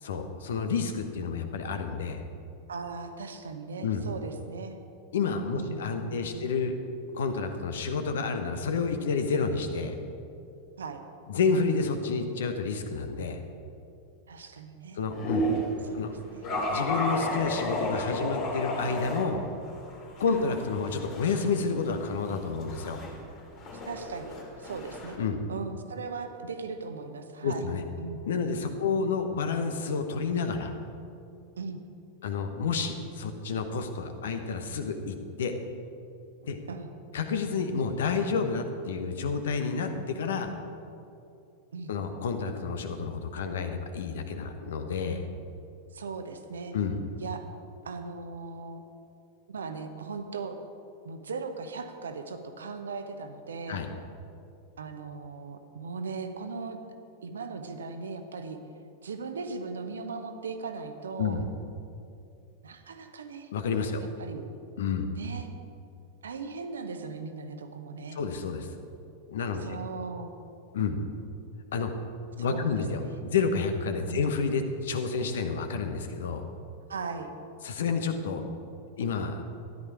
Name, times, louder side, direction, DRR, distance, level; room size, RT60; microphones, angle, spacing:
voice 1, 0.0-2.2 3.8-4.0 5.1-6.8 7.1-10.0 11.3-13.4 15.0-15.4 15.9-16.1 16.7-19.4 20.2-23.0 25.2-25.4 27.4-27.8 28.2-30.7 32.2-35.5 36.4-36.6 37.1-40.5 41.9-45.2 46.7-47.0 53.7-53.9 61.2-61.5 63.5-64.0 64.8-65.1 68.1-68.7 69.3-69.7 70.7-71.0 71.7-71.9 72.4-76.4 77.6-78.4 79.0-79.4, left 5 dB, 60° left, 7 dB, 1.1 m, -30 dB
voice 2, 2.7-4.8 5.5-6.5 10.8-11.0 14.3-15.0 15.9-16.0 16.3-16.5 20.3-20.5 23.9-25.2 25.5-27.7 28.0-28.2 28.8-28.9 31.6-31.8 36.7-36.9 41.7-41.9 45.9-46.8 47.2-47.4 47.8-48.8 49.5-50.6 51.0-53.8 54.8-56.8 57.2-58.6 59.0-61.4 62.6-63.5 64.0-64.5 65.1-65.5 66.2-68.2 69.6-70.3 72.4-72.7 73.1-73.4 74.1-74.2 76.9-77.3, right 4 dB, 70° right, 7 dB, 1.0 m, -38 dB
sound 1, 15.1-15.7 16.4-19.2 19.7-25.2, equal, 40° left, 2.6 m, -33 dB
13.5 x 10.5 x 4.8 m, 2.6 s
figure-of-eight pair, 90°, 0 cm